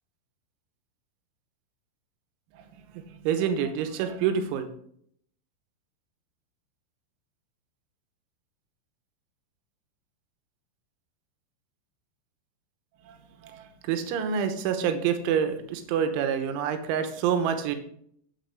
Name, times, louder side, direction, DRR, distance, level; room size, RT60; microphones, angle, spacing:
voice 1, 2.5-4.7 13.0-17.8, right 8 dB, 80° right, 7 dB, 3.3 m, -28 dB
9.3 x 7.7 x 3.5 m, 0.65 s
omnidirectional pair, 5.7 m